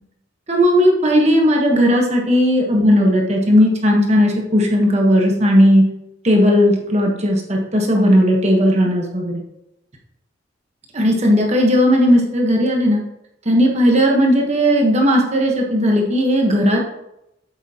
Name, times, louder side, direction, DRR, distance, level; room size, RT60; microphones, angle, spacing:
voice 1, 0.5-5.8 6.2-9.4 10.9-13.0 13.4-16.8, equal, 35° right, 0 dB, 1.1 m, -15 dB
8.2 x 8.1 x 2.9 m, 0.86 s
head